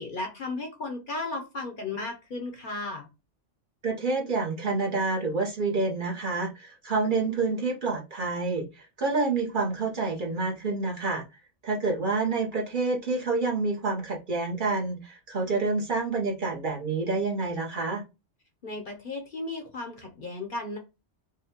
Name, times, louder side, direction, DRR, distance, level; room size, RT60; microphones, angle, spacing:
voice 1, 0.0-3.1 18.6-20.8, left 2 dB, 50° left, 3 dB, 0.8 m, -35 dB
voice 2, 3.8-11.2 11.6-18.0, right 3 dB, 45° right, -1 dB, 0.9 m, -28 dB
5.1 x 2.2 x 2.8 m, 0.27 s
omnidirectional pair, 1.3 m